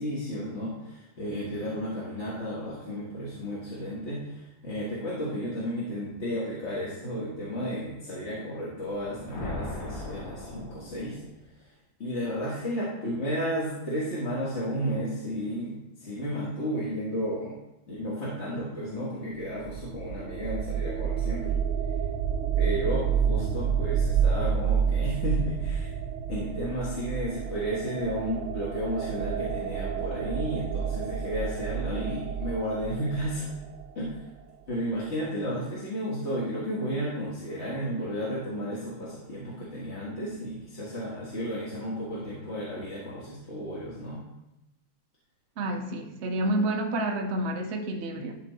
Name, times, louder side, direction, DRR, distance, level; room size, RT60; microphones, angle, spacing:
voice 1, 0.0-11.2 11.6-11.7 12.0-17.5 17.9-21.5 22.6-25.9 26.3-33.5 34.0-34.1 34.7-44.2, equal, 35° left, -7 dB, 1.7 m, -33 dB
sound 1, 8.9-11.5, left 2 dB, 85° left, 2.5 m, -38 dB
sound 2, 19.4-34.2, right 7 dB, 85° right, 1.5 m, -29 dB
voice 2, 45.6-48.4, right 1 dB, 65° right, 3 dB, 0.6 m, -29 dB
12.0 x 4.5 x 4.1 m, 0.91 s
omnidirectional pair, 2.4 m